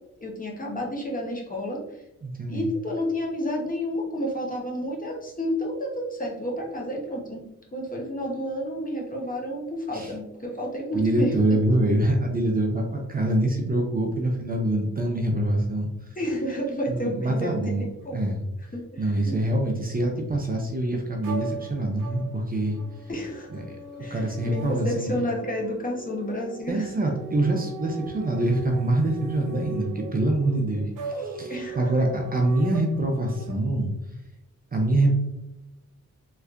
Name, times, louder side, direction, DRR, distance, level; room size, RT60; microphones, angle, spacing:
voice 1, 0.2-1.8 2.5-7.4 7.7-11.3 16.2-18.3 18.7-19.4 23.1-23.6 24.0-27.1 31.5-31.8, equal, 25° left, -1 dB, 0.9 m, -30 dB
voice 2, 2.2-2.7 9.9-10.1 10.9-15.9 16.9-18.4 19.0-22.8 23.5-25.2 26.7-33.9 34.7-35.1, right 1 dB, 30° right, 1 dB, 0.6 m, -25 dB
sound 1, 21.2-33.5, right 3 dB, 85° right, 0.8 m, -39 dB
3.2 x 3.2 x 2.5 m, 0.93 s
cardioid pair, 80°, 31 cm